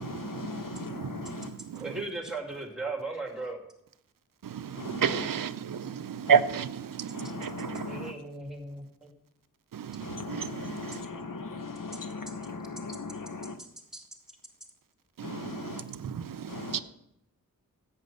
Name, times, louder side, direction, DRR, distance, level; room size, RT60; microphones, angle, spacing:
voice 1, 0.0-1.5 4.7-5.3 6.2-6.4 7.1-8.2 10.0-13.6 15.2-15.9 16.5-16.8, left 4 dB, 70° left, 1.0 m, -39 dB
voice 2, 1.8-3.6 7.9-9.1 13.9-14.0, right 3 dB, ahead, 2.4 m, -37 dB
voice 3, 4.4-7.9 9.7-10.5 15.2-15.5 15.9-16.8, right 7 dB, 75° right, 0.6 m, -30 dB
10.5 x 8.4 x 5.5 m
wide cardioid pair, 70°, 33 cm